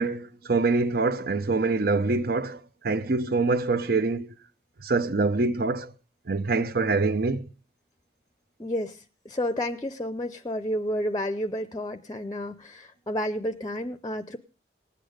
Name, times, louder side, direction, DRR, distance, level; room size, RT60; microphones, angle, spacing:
voice 1, 0.0-4.3 4.8-5.9 6.3-7.5, right 3 dB, 55° right, 0.7 m, -25 dB
voice 2, 8.6-14.4, equal, 20° left, 0.6 m, -31 dB
19.0 x 8.3 x 5.0 m
head